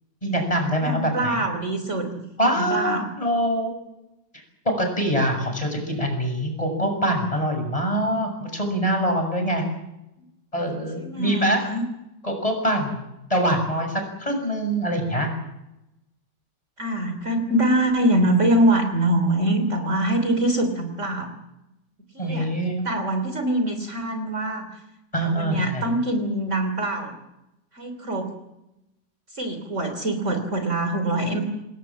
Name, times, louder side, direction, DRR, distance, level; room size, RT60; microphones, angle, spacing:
voice 1, 0.2-1.3 2.4-3.7 4.7-9.6 10.5-11.6 12.2-13.0 13.3-15.3 22.2-22.9 25.1-25.8, right 1 dB, 20° left, 4 dB, 6.9 m, -24 dB
voice 2, 0.8-2.1 2.5-3.1 11.0-11.9 16.8-21.3 22.1-22.5 22.8-24.7 25.2-27.1 27.7-28.3 29.3-31.5, right 1 dB, 40° right, 7 dB, 3.6 m, -24 dB
28.0 x 19.5 x 7.5 m, 0.90 s
omnidirectional pair, 2.0 m